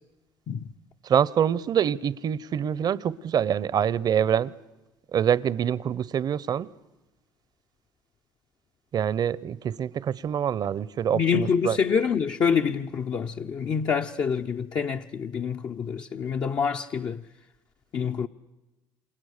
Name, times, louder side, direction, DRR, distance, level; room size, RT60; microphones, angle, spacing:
voice 1, 1.0-4.5 5.1-6.7 8.9-11.8, right 9 dB, 50° right, 0.8 m, -25 dB
voice 2, 11.1-17.2 17.9-18.3, left 6 dB, 50° left, 0.9 m, -26 dB
28.5 x 28.0 x 6.7 m
supercardioid pair, 80°, 9 cm